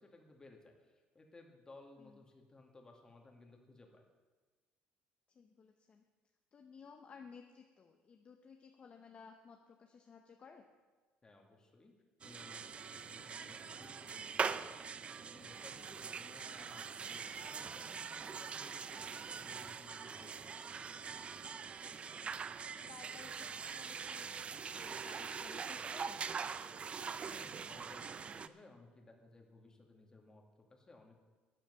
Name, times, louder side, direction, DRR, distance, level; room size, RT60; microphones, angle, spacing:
voice 1, 0.0-4.0 11.2-12.0 12.2-15.0 15.3-20.5 27.2-31.2, left 2 dB, 20° left, 2 dB, 2.1 m, -59 dB
voice 2, 5.3-6.0 6.5-10.6 21.8-24.3 24.7-26.2, left 5 dB, 35° left, 3 dB, 0.9 m, -57 dB
sound 1, 12.2-28.5, right 6 dB, 30° right, 0.5 m, -43 dB
12.5 x 9.0 x 6.9 m, 1.3 s
cardioid pair, 120°, 4 cm